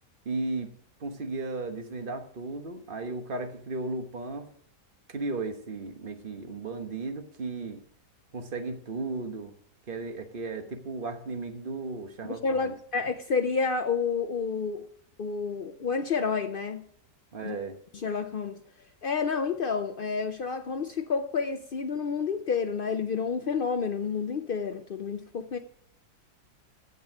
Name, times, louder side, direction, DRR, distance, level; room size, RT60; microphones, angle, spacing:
voice 1, 0.2-0.7 1.0-4.5 5.1-7.8 8.3-9.5 9.9-12.7 17.3-17.8, right 3 dB, 35° right, 1.3 m, -35 dB
voice 2, 12.2-14.9 15.2-16.8 17.4-17.6 17.9-18.6 19.0-25.6, left 5 dB, 75° left, 0.5 m, -29 dB
15.5 x 5.4 x 6.0 m
omnidirectional pair, 1.7 m